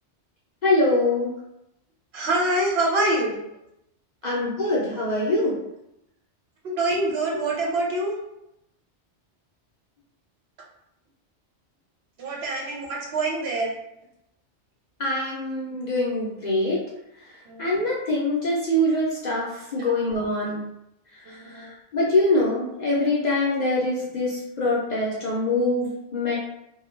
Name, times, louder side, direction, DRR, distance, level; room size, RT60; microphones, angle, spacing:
voice 1, 0.6-1.3 4.2-5.5 15.0-16.8 17.6-20.6 21.3-21.7 21.9-26.4, left 1 dB, 50° left, -5 dB, 0.6 m, -24 dB
voice 2, 2.1-3.4 6.6-8.2 12.2-13.7 17.4-17.7 19.8-19.9 21.3-21.7, right 2 dB, 65° right, -2 dB, 0.9 m, -25 dB
2.3 x 2.2 x 3.1 m, 0.84 s
omnidirectional pair, 1.2 m